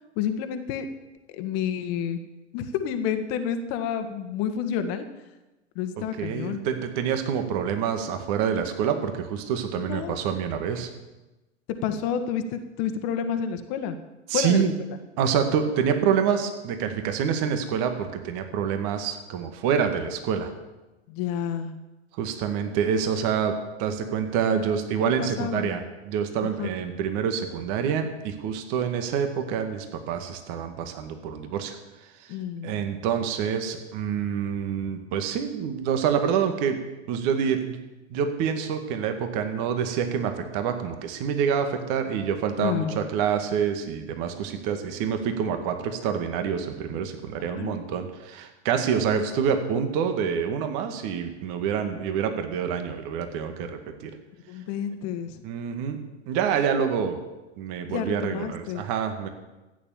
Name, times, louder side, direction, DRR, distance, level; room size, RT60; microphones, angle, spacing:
voice 1, 0.1-0.9 1.3-2.2 2.5-5.1 5.7-6.6 9.8-10.2 11.8-14.0 14.3-15.0 21.1-21.8 25.2-25.7 26.4-26.7 32.3-32.8 42.6-43.0 47.4-47.9 54.5-55.4 57.9-58.8, left 8 dB, 45° left, 8 dB, 1.6 m, -29 dB
voice 2, 6.2-10.9 14.3-14.7 15.2-20.5 22.2-31.8 32.6-36.8 37.1-37.8 38.1-54.1 55.4-56.0 56.3-57.2 57.6-59.3, right 7 dB, 45° right, 7 dB, 2.0 m, -27 dB
14.0 x 9.5 x 7.2 m, 1.1 s
figure-of-eight pair, 95°, 36 cm